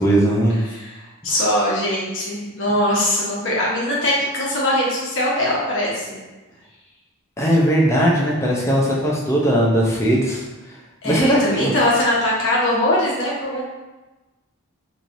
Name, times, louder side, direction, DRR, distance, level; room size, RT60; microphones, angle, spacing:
voice 1, 0.0-0.6 1.3-1.4 7.4-10.8 11.0-11.7, equal, 10° left, -4 dB, 0.6 m, -19 dB
voice 2, 0.6-6.2 11.0-13.6, left 1 dB, 55° left, -5 dB, 1.1 m, -21 dB
4.3 x 3.1 x 2.6 m, 1.1 s
head